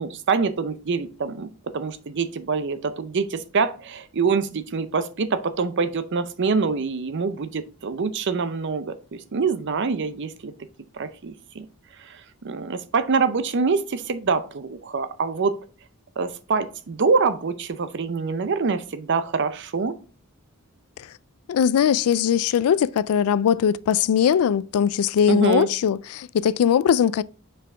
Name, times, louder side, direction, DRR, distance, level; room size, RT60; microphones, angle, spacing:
voice 1, 0.0-1.5 1.7-10.5 10.9-11.7 12.0-12.2 12.4-15.5 16.2-19.9 25.3-25.7, right 4 dB, 55° right, 0.6 m, -25 dB
voice 2, 21.5-27.2, left 8 dB, 75° left, 0.3 m, -20 dB
6.0 x 4.7 x 3.3 m
head